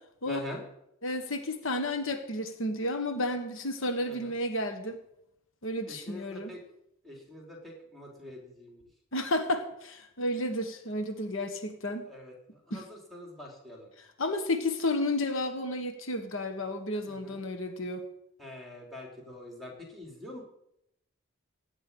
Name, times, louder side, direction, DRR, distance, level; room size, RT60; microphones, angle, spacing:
voice 1, 0.3-0.6 4.1-4.3 5.9-6.6 7.0-8.8 12.1-12.3 12.7-13.9 17.0-17.4 18.4-20.4, left 1 dB, ahead, 0 dB, 3.7 m, -44 dB
voice 2, 1.0-5.0 5.6-6.5 9.1-12.1 12.7-12.8 14.0-18.0, left 1 dB, 70° left, 6 dB, 1.5 m, -32 dB
16.0 x 5.6 x 9.9 m, 0.79 s
head